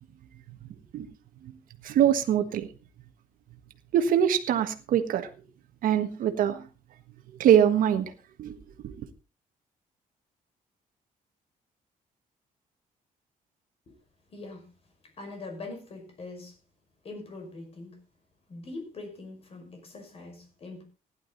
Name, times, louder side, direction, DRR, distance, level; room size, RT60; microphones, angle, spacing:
voice 1, 1.8-2.7 3.9-5.3 5.8-6.6 7.4-8.1 8.4-8.6 8.8-8.9, right 9 dB, 75° right, 1.5 m, -23 dB
voice 2, 14.3-14.7 15.2-16.6 17.0-18.0 18.5-20.8, left 2 dB, 45° left, 5.9 m, -42 dB
16.0 x 11.0 x 4.1 m
cardioid pair, 135°, 14 cm